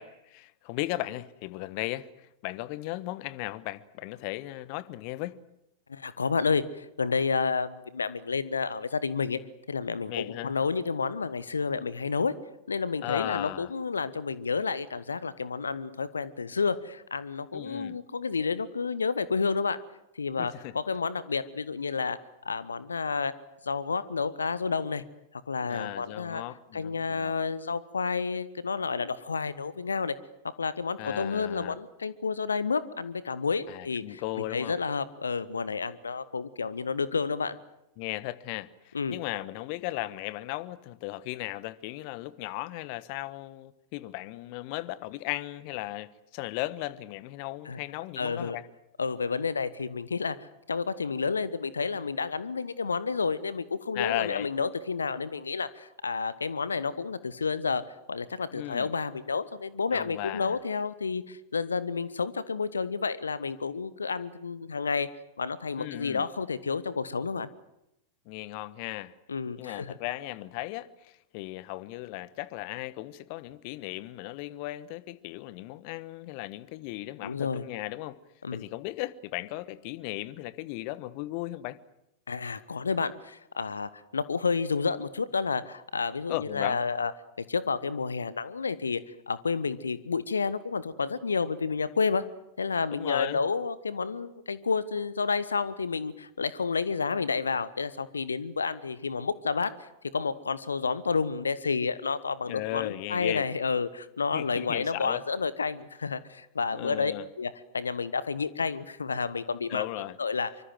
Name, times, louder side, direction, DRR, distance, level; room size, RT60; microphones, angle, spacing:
voice 1, 0.0-5.4 10.1-10.5 13.0-13.7 17.5-18.0 20.4-20.7 25.7-27.4 31.0-31.8 33.7-34.8 38.0-48.6 53.9-54.5 58.5-58.9 59.9-60.6 65.8-66.2 68.3-69.1 69.6-78.2 78.5-81.8 86.3-86.8 92.9-93.4 102.5-103.5 104.3-105.2 106.7-107.3 109.7-110.2, left 17 dB, 45° left, 1.2 m, -36 dB
voice 2, 5.9-9.4 9.7-12.3 12.7-19.8 20.1-22.2 22.4-23.3 23.6-25.0 25.5-26.4 26.7-30.2 30.4-34.2 34.5-37.6 38.9-39.2 47.7-47.8 48.2-48.6 49.0-50.4 50.7-57.8 58.1-65.1 65.4-67.5 69.3-70.0 77.2-77.6 78.4-78.6 82.3-87.1 87.4-92.3 92.6-107.1 107.4-109.9 110.2-110.5, left 5 dB, 75° left, 1.2 m, -30 dB
25.0 x 24.5 x 7.6 m
figure-of-eight pair, 90°, 0 cm